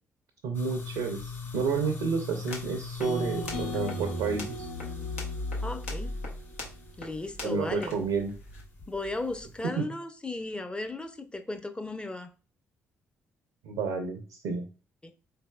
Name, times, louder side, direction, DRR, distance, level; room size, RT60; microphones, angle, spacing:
voice 1, 0.4-4.7 7.4-8.3 9.8-9.9 13.6-14.7, right 5 dB, 70° right, 0.5 m, -30 dB
sound 1, 0.5-9.7, left 3 dB, 40° left, 1.9 m, -38 dB
sound 2, 2.3-8.6, left 2 dB, 85° left, 0.7 m, -45 dB
sound 3, 3.0-7.1, equal, 65° left, 1.1 m, -39 dB
voice 2, 5.6-6.1 7.0-8.0 8.9-12.3 15.0-15.1, left 2 dB, 15° left, 0.5 m, -36 dB
4.1 x 3.3 x 2.2 m
figure-of-eight pair, 40°, 7 cm